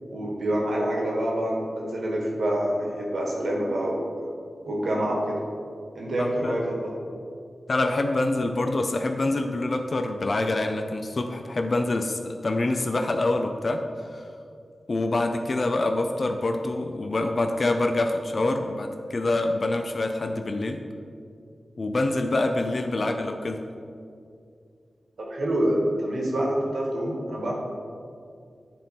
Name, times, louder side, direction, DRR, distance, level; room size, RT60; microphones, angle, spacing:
voice 1, 0.1-4.2 4.7-5.4 5.9-6.9 23.0-23.1 25.2-27.5, right 1 dB, 80° right, -2 dB, 1.5 m, -27 dB
voice 2, 6.2-6.6 7.7-14.3 14.9-20.8 21.8-23.6, left 2 dB, 55° left, 5 dB, 0.5 m, -26 dB
9.2 x 3.6 x 4.3 m, 2.3 s
cardioid pair, 40°, 0 cm